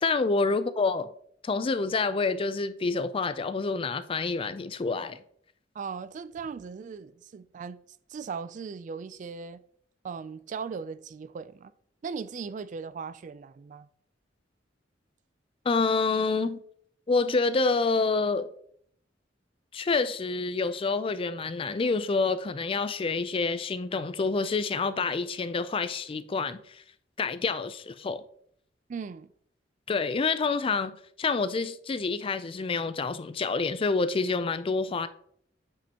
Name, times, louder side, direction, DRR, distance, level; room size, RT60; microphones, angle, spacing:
voice 1, 0.0-1.1 1.4-5.2 15.7-16.6 17.1-18.5 19.7-26.8 27.2-28.2 29.9-35.1, left 4 dB, 30° left, 0.4 m, -27 dB
voice 2, 5.8-7.8 8.1-9.6 10.0-11.7 12.0-13.9 28.9-29.3, right 5 dB, 45° right, 0.3 m, -38 dB
8.6 x 5.1 x 2.9 m
head